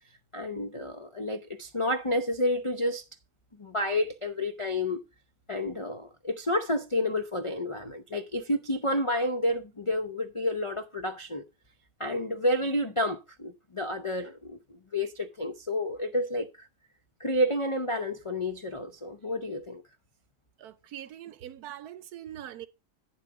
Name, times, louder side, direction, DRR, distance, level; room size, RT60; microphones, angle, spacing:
voice 1, 0.3-3.0 3.6-5.0 5.5-11.4 12.0-16.7 17.2-19.8, left 1 dB, 55° left, 0.3 m, -30 dB
voice 2, 20.6-22.7, right 11 dB, 70° right, 1.2 m, -42 dB
9.7 x 7.2 x 4.8 m
omnidirectional pair, 1.8 m